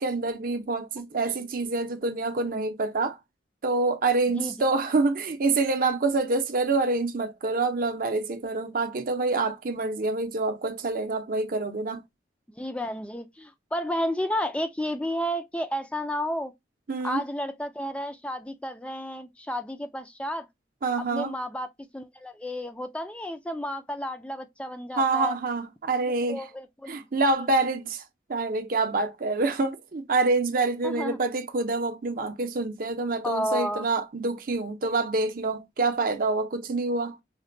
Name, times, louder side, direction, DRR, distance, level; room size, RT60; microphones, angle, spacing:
voice 1, 0.0-3.2 3.6-12.0 16.9-17.2 20.8-21.3 25.0-26.5 26.9-28.0 28.3-37.2, right 3 dB, 50° right, 0.6 m, -26 dB
voice 2, 12.6-16.5 17.0-20.5 21.1-21.7 21.9-25.4 26.3-27.1 30.8-31.2 33.2-33.9, equal, 5° left, 0.3 m, -31 dB
4.1 x 2.1 x 2.5 m
head